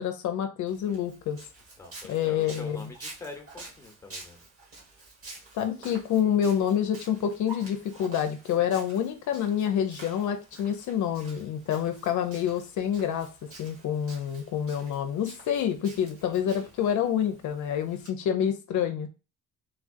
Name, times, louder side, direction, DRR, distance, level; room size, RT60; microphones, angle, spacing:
voice 1, 0.0-1.4 2.1-2.8 5.5-13.3 13.6-19.1, left 9 dB, 75° left, 0.5 m, -27 dB
Walk footsteps, 0.7-18.1, right 3 dB, 50° right, 1.7 m, -49 dB
voice 2, 1.8-4.4 16.4-16.7, left 3 dB, 10° left, 0.9 m, -45 dB
3.4 x 2.3 x 2.4 m
cardioid pair, 90°, 30 cm